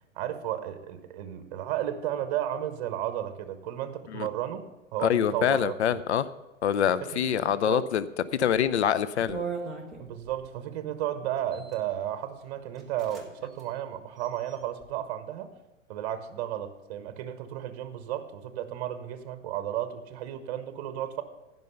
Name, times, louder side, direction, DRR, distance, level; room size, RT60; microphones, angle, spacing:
voice 1, 0.1-4.6 4.9-6.0 7.0-7.9 10.0-15.5 15.9-21.2, right 11 dB, 30° right, 11 dB, 0.9 m, -33 dB
voice 2, 5.0-6.3 6.6-8.1 8.3-9.4, left 9 dB, 60° left, 16 dB, 0.6 m, -25 dB
sound 1, 9.3-10.4 11.4-11.8 12.4-12.5 12.7-13.3 13.5-13.7 14.2-14.8, right 5 dB, ahead, 0.3 m, -39 dB
16.0 x 5.5 x 5.5 m, 1.1 s
figure-of-eight pair, 110°, 38 cm